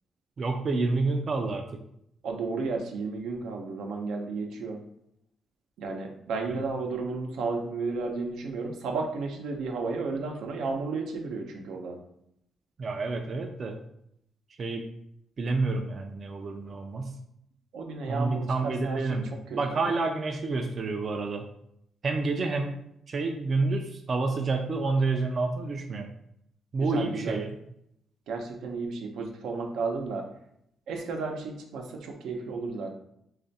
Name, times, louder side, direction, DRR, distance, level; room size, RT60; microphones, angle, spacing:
voice 1, 0.4-1.6 6.5-6.7 12.8-13.8 14.6-14.9 15.4-17.1 18.1-21.5 22.0-22.8 23.1-26.1 26.7-27.5, right 3 dB, 40° right, 3 dB, 0.4 m, -29 dB
voice 2, 2.2-4.8 5.8-12.0 17.7-19.0 26.8-27.4 28.3-30.2 30.9-32.9, right 4 dB, 85° right, 2 dB, 0.7 m, -33 dB
3.3 x 2.4 x 4.0 m, 0.74 s
cardioid pair, 140°, 0 cm